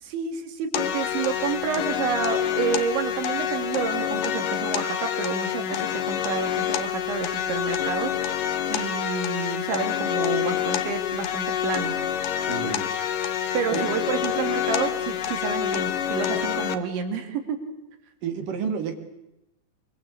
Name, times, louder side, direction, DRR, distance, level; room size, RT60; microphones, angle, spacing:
voice 1, 0.0-12.0 13.5-17.6, right 6 dB, 75° right, 5 dB, 4.8 m, -29 dB
sound 1, 0.7-16.8, left 10 dB, 75° left, 2.0 m, -27 dB
voice 2, 12.4-12.9 13.7-13.9 18.2-18.9, right 7 dB, 55° right, 6 dB, 3.3 m, -30 dB
24.5 x 23.5 x 8.5 m, 0.90 s
omnidirectional pair, 5.4 m